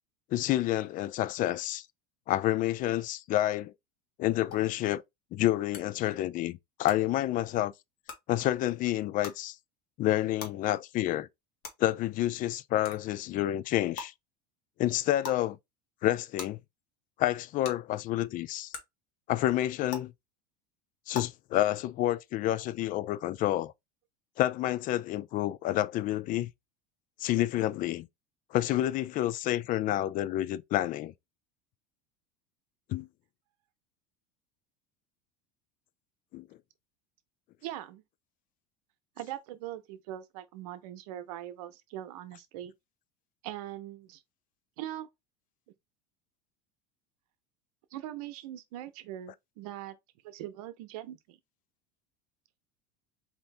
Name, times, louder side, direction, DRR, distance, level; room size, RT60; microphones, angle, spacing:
voice 1, 0.3-1.8 2.3-3.7 4.2-5.0 5.3-7.7 8.3-9.6 10.0-11.3 11.8-14.1 14.8-15.6 16.0-16.6 17.2-18.7 19.3-20.1 21.1-23.7 24.4-26.5 27.2-28.1 28.5-31.1 32.9-33.1 36.3-36.5, left 14 dB, 45° left, 0.4 m, -29 dB
sound 1, 4.5-4.6 5.7-5.8 6.8-6.9 8.0-8.2 9.2-9.3 10.4-10.5 11.6-11.7 12.8-13.0 14.0-14.1 15.2-15.4 16.4-16.5 17.6-17.7 18.7-18.8 19.9-20.0 21.1-21.2, left 5 dB, 60° left, 1.6 m, -38 dB
voice 2, 37.6-38.0 39.2-42.7 43.4-44.2 44.8-45.1 47.9-50.0 50.2-51.4, right 13 dB, 80° right, 0.7 m, -41 dB
4.4 x 2.7 x 3.3 m
supercardioid pair, 110°, 20 cm